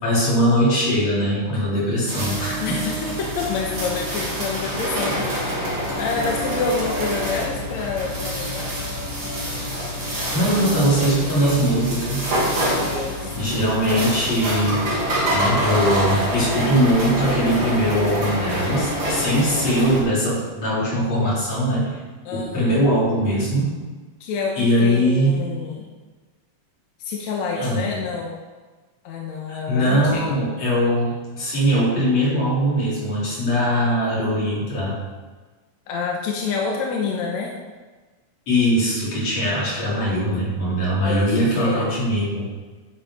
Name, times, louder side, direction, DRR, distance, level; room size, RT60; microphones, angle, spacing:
voice 1, 0.0-2.6 10.3-12.3 13.4-14.9 15.3-22.0 22.3-23.7 24.6-25.4 27.6-27.9 29.5-35.0 38.5-42.5, equal, 45° left, -7 dB, 5.2 m, -21 dB
sound 1, 2.1-20.0, equal, 35° right, 3.2 m, -26 dB
voice 2, 2.6-5.5 6.0-8.8 12.6-13.6 22.2-22.8 24.2-25.9 27.0-28.4 29.0-30.3 35.9-37.5 41.0-41.9, left 4 dB, 65° left, -1 dB, 1.9 m, -28 dB
10.0 x 9.4 x 5.0 m, 1.3 s
omnidirectional pair, 4.2 m